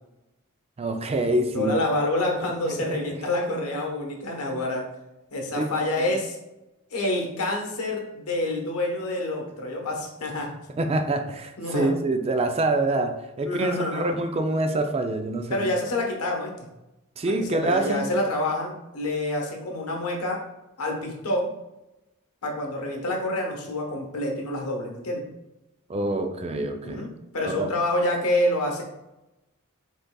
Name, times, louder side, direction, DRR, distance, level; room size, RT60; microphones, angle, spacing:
voice 1, 0.8-1.8 2.7-3.0 5.6-5.7 10.8-15.7 17.2-18.0 25.9-27.0 27.4-27.7, right 2 dB, 30° right, 6 dB, 0.4 m, -26 dB
voice 2, 1.5-4.8 5.3-6.4 6.9-10.5 11.6-11.9 13.4-14.1 15.5-16.7 17.6-20.4 20.8-21.5 22.4-25.2 26.8-27.1 27.3-28.8, left 1 dB, 85° left, 1 dB, 1.1 m, -27 dB
5.2 x 3.8 x 2.2 m, 0.96 s
head